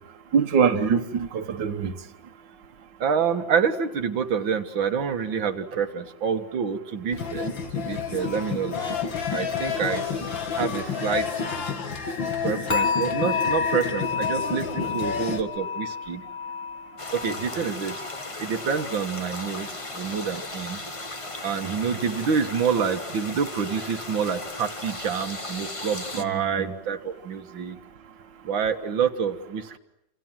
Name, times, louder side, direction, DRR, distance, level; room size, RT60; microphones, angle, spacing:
voice 1, 0.3-1.9 17.6-17.7 26.1-26.7, right 6 dB, 70° right, 6 dB, 2.1 m, -24 dB
voice 2, 3.0-9.0 9.3-11.3 12.4-16.2 17.1-18.0 18.4-19.7 19.9-20.8 21.4-27.8 28.4-29.8, right 6 dB, 85° right, 5 dB, 2.2 m, -27 dB
sound 1, 7.1-15.4, left 6 dB, 75° left, 2.8 m, -30 dB
sound 2, 12.7-19.8 20.1-20.5 21.0-21.1, left 6 dB, 40° left, 3.0 m, -31 dB
sound 3, 17.0-26.2, left 2 dB, 20° left, 1.3 m, -36 dB
28.5 x 28.0 x 7.5 m, 0.81 s
omnidirectional pair, 2.1 m